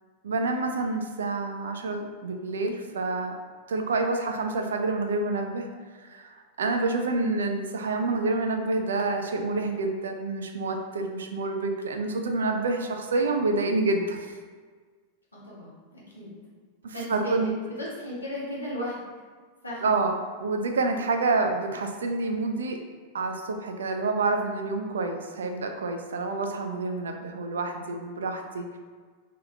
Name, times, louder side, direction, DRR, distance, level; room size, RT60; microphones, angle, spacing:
voice 1, 0.2-3.4 3.7-5.7 6.0-14.4 16.8-17.5 19.8-22.8 23.1-28.8, right 3 dB, 65° right, 4 dB, 0.3 m, -28 dB
voice 2, 15.3-16.3 16.9-19.1 19.6-19.9, equal, 80° left, -6 dB, 0.9 m, -36 dB
2.8 x 2.3 x 3.1 m, 1.5 s
figure-of-eight pair, 90°, 0 cm